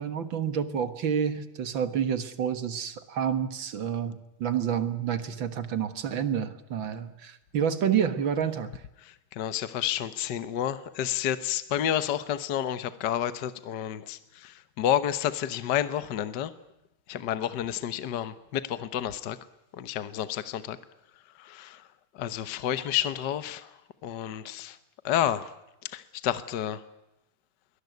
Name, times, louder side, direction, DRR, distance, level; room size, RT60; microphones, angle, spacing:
voice 1, 0.0-8.8, right 8 dB, 65° right, 11 dB, 2.2 m, -29 dB
voice 2, 9.0-16.5 17.1-19.4 19.7-20.8 21.4-21.8 22.1-23.7 24.0-24.8 25.0-25.5 25.8-26.8, left 11 dB, 60° left, 13 dB, 1.5 m, -30 dB
23.0 x 18.5 x 9.4 m, 0.90 s
omnidirectional pair, 2.3 m